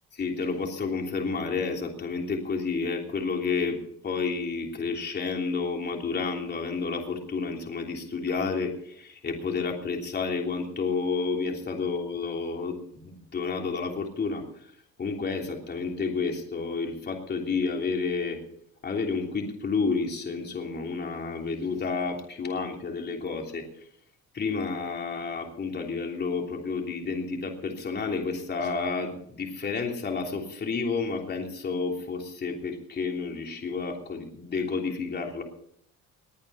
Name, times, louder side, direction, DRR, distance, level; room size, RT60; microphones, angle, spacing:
voice 1, 0.1-14.7 15.0-18.4 18.8-23.9 24.3-35.4, left 4 dB, 30° left, 2 dB, 3.2 m, -30 dB
20.5 x 9.6 x 5.6 m, 0.68 s
cardioid pair, 130°, 32 cm